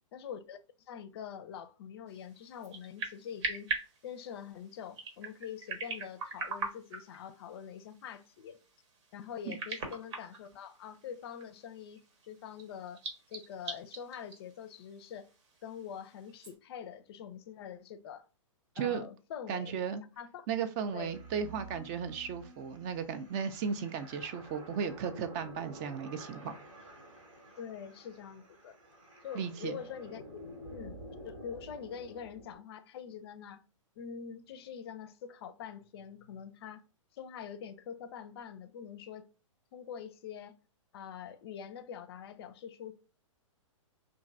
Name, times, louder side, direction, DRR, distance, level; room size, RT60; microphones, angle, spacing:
voice 1, 0.1-0.6 0.9-3.7 4.0-8.6 9.1-12.0 12.3-13.0 13.3-15.3 15.6-18.3 18.8-19.7 20.2-20.5 20.9-21.1 27.6-28.7 29.2-30.4 30.7-33.6 34.0-36.8 37.1-39.3 39.7-40.6 40.9-42.9, left 8 dB, 50° left, 0.4 m, -44 dB
sound 1, 2.1-16.5, right 3 dB, 60° right, 1.0 m, -43 dB
voice 2, 18.8-19.1 19.5-20.0 20.5-26.6 29.3-29.7, right 7 dB, 30° right, 0.3 m, -35 dB
sound 2, 20.8-32.6, right 1 dB, 80° right, 1.5 m, -50 dB
3.0 x 2.5 x 2.4 m
hypercardioid pair, 120°, 17 cm